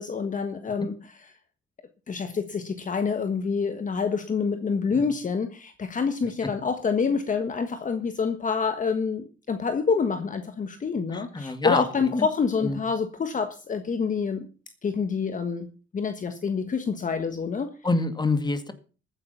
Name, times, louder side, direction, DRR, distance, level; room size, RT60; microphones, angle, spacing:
voice 1, 0.0-1.3 2.1-14.5 14.8-17.7, left 5 dB, 40° left, 1.5 m, -27 dB
voice 2, 11.1-11.8 12.1-12.2 12.6-12.7 17.8-18.7, left 3 dB, 20° left, 2.2 m, -25 dB
14.0 x 9.6 x 5.8 m
cardioid pair, 90°, 20 cm